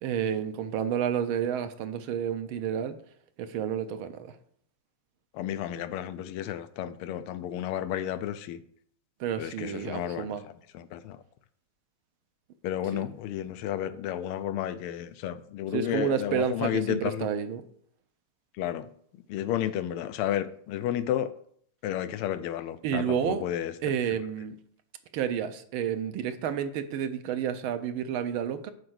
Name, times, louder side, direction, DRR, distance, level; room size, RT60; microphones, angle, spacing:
voice 1, 0.0-3.0 3.4-4.3 9.2-10.4 12.9-13.0 15.7-17.6 22.8-23.4 23.8-24.5 25.1-28.7, right 8 dB, 75° right, 1.5 m, -30 dB
voice 2, 5.3-8.6 9.4-10.3 10.7-11.2 12.6-17.3 18.6-18.9 19.3-21.3 21.8-23.7, left 11 dB, 90° left, 1.5 m, -32 dB
7.8 x 4.7 x 6.2 m
omnidirectional pair, 2.4 m